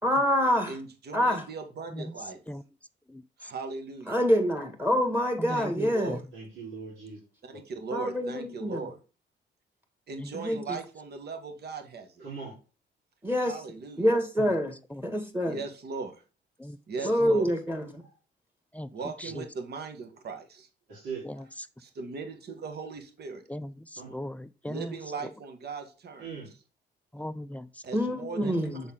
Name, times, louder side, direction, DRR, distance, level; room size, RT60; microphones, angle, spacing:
voice 1, 0.0-0.7 1.1-1.4 4.1-6.2 7.9-8.8 10.3-10.6 13.2-13.5 14.0-14.7 15.0-15.6 17.0-18.0 27.9-28.8, equal, 10° right, 1.8 m, -26 dB
voice 2, 0.7-2.4 3.4-4.2 5.5-6.2 7.4-9.0 10.1-12.2 13.4-14.1 15.4-16.2 16.9-17.5 18.9-20.7 21.8-23.4 24.7-26.3 27.8-28.6, right 4 dB, 55° right, 1.4 m, -39 dB
voice 3, 5.4-6.2 10.2-10.3 14.9-15.0 16.6-16.8 17.2-17.4 18.7-18.9 19.2-19.4 23.5-25.0 27.1-27.7 28.4-28.6, equal, 5° left, 0.4 m, -38 dB
voice 4, 6.3-7.2 7.5-7.6 12.2-12.5 18.0-18.2 19.2-19.3 20.9-21.5 23.9-24.1 26.2-26.5, right 5 dB, 80° right, 3.4 m, -41 dB
7.2 x 4.1 x 3.7 m
cardioid pair, 90°, 20 cm